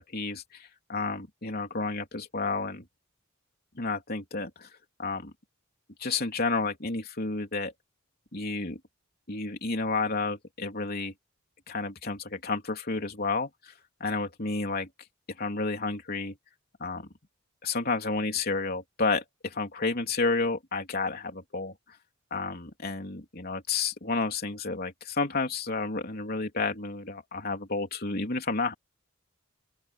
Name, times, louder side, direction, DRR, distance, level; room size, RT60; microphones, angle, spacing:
voice 1, 0.0-2.9 3.8-4.7 5.0-5.3 6.0-7.7 8.3-8.8 9.3-11.1 11.7-13.7 14.0-14.9 15.4-16.3 16.8-17.1 17.6-21.8 22.3-28.7, left 3 dB, 50° left, 3.4 m, -31 dB
open air
head